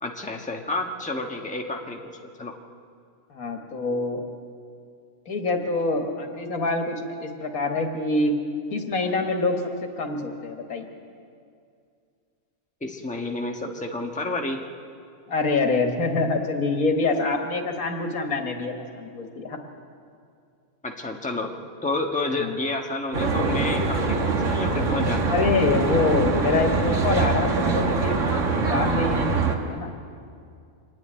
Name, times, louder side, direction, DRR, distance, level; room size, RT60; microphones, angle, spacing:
voice 1, 0.0-2.1 2.4-2.5 12.8-14.6 20.8-21.5 21.8-25.3, left 2 dB, 5° left, 1 dB, 1.2 m, -30 dB
voice 2, 3.3-4.2 5.3-8.3 8.7-9.5 10.0-10.9 15.3-19.6 22.4-22.6 25.3-29.9, left 3 dB, 85° left, 3 dB, 2.2 m, -25 dB
Traffic noise roadway noise, 23.1-29.6, right 3 dB, 60° right, 1.8 m, -23 dB
25.0 x 11.0 x 9.9 m, 2.3 s
omnidirectional pair, 1.5 m